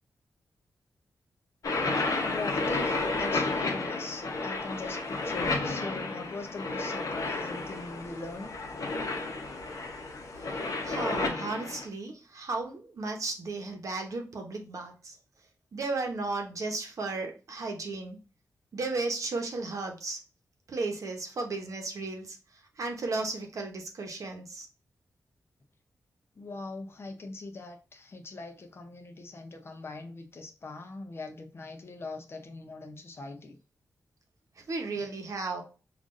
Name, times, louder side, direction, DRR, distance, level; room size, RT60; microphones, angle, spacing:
sound 1, 1.6-11.9, left 3 dB, 65° left, 0.9 m, -32 dB
voice 1, 2.2-8.5 26.4-33.6, left 3 dB, 40° left, 5 dB, 0.7 m, -41 dB
voice 2, 10.3-15.2 15.7-18.2 18.7-20.2 20.7-24.7 34.6-35.6, right 3 dB, 60° right, 3 dB, 0.9 m, -35 dB
5.5 x 2.5 x 2.5 m, 0.34 s
wide cardioid pair, 135°, 6 cm